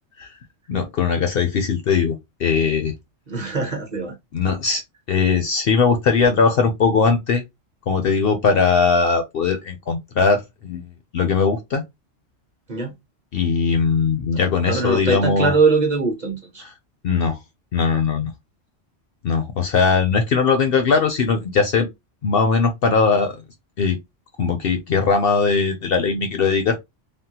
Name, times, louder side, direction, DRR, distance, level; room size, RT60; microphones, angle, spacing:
voice 1, 0.7-2.9 4.3-4.8 5.1-7.4 7.9-11.8 13.3-15.5 16.6-16.7 17.0-17.4 17.7-18.3 19.2-21.9 22.2-23.4 23.8-24.0 24.4-26.8, left 5 dB, 60° left, 0.7 m, -20 dB
voice 2, 3.3-4.1 12.7-12.9 14.7-16.6, right 4 dB, 40° right, 0.8 m, -22 dB
3.5 x 2.1 x 2.8 m
omnidirectional pair, 1.3 m